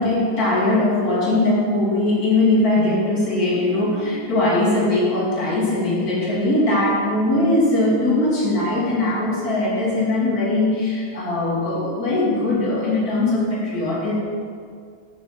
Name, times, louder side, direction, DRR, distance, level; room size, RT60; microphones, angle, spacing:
voice 1, 0.0-14.1, left 2 dB, 40° left, -6 dB, 3.0 m, -20 dB
10.5 x 6.7 x 5.8 m, 2.1 s
omnidirectional pair, 2.4 m